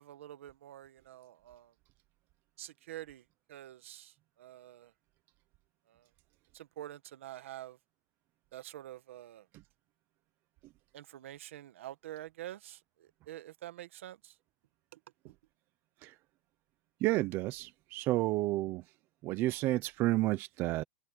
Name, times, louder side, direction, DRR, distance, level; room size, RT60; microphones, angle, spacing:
voice 1, 0.0-1.7 2.6-4.9 5.9-6.1 6.5-7.8 8.5-9.5 10.9-14.4 14.9-15.0 15.3-15.4, right 13 dB, 80° right, 1.7 m, -47 dB
voice 2, 17.0-18.8 19.2-20.8, right 18 dB, 30° right, 0.7 m, -31 dB
supercardioid pair, 165°, 7 cm